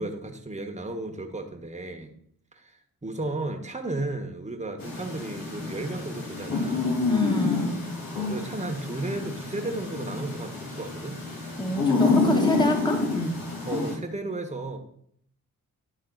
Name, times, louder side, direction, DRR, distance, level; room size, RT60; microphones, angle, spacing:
voice 1, 0.0-2.1 2.5-7.0 8.1-11.2 13.6-14.8, right 2 dB, 20° right, 4 dB, 1.4 m, -34 dB
sound 1, 4.8-13.9, left 3 dB, 70° left, 2.0 m, -28 dB
voice 2, 7.1-7.8 11.6-13.4, left 1 dB, 10° left, 3 dB, 1.6 m, -27 dB
11.5 x 3.9 x 4.0 m, 0.69 s
supercardioid pair, 45°, 36 cm